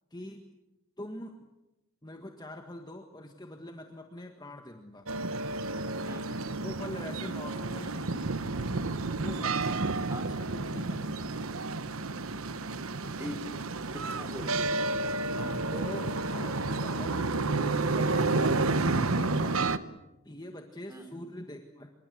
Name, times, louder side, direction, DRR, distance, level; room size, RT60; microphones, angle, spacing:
voice 1, 0.1-0.4 1.0-1.3 2.0-5.1 6.5-8.3 9.2-9.9 10.1-11.1 15.4-19.8 20.2-21.9, left 1 dB, 20° left, 4 dB, 1.7 m, -44 dB
sound 1, 5.1-19.8, right 3 dB, 75° right, 1.1 m, -30 dB
voice 2, 6.1-6.4 10.1-10.2 13.1-13.6 13.9-14.9 20.9-21.1, equal, 10° right, 7 dB, 3.9 m, -42 dB
26.5 x 23.5 x 7.9 m, 0.95 s
head